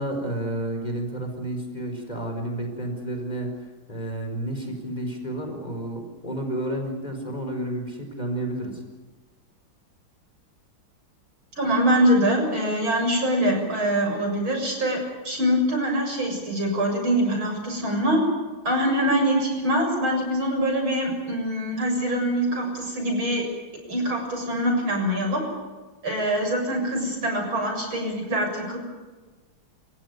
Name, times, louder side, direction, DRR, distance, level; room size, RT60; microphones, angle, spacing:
voice 1, 0.0-3.5 3.9-8.8, right 1 dB, 20° left, 3 dB, 4.7 m, -31 dB
voice 2, 11.6-18.2 18.6-23.4 23.9-25.4 26.0-28.8, equal, 80° right, 2 dB, 7.7 m, -24 dB
30.0 x 15.5 x 9.5 m, 1.3 s
omnidirectional pair, 2.2 m